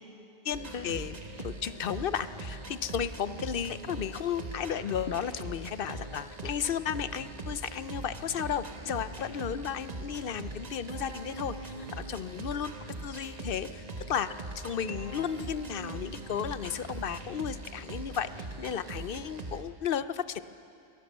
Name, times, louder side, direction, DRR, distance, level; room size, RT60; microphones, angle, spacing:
voice 1, 0.4-12.7 13.0-20.4, left 8 dB, 60° left, 14 dB, 0.8 m, -34 dB
sound 1, 0.5-19.6, right 2 dB, 40° right, 1.3 m, -41 dB
23.0 x 17.5 x 7.3 m, 2.6 s
omnidirectional pair, 1.1 m